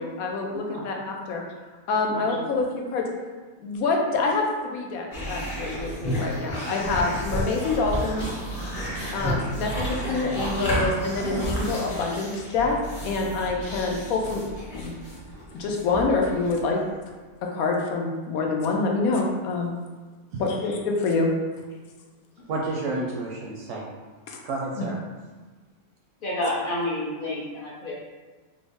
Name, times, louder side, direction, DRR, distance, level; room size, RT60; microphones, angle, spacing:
voice 1, 0.0-1.4 1.9-3.1 3.6-8.3 9.1-12.8 13.0-14.4 14.7-14.9 15.5-16.8 17.5-19.7 20.4-21.3 24.3-24.4 24.8-24.9, left 3 dB, 80° left, 0 dB, 1.0 m, -26 dB
sound 1, 5.1-16.8, equal, 30° left, 0.9 m, -31 dB
voice 2, 22.5-23.9 24.4-25.0, right 2 dB, 70° right, -3 dB, 0.8 m, -31 dB
voice 3, 26.2-27.9, left 1 dB, 55° left, -5 dB, 0.6 m, -29 dB
3.8 x 2.0 x 3.4 m, 1.3 s
omnidirectional pair, 1.5 m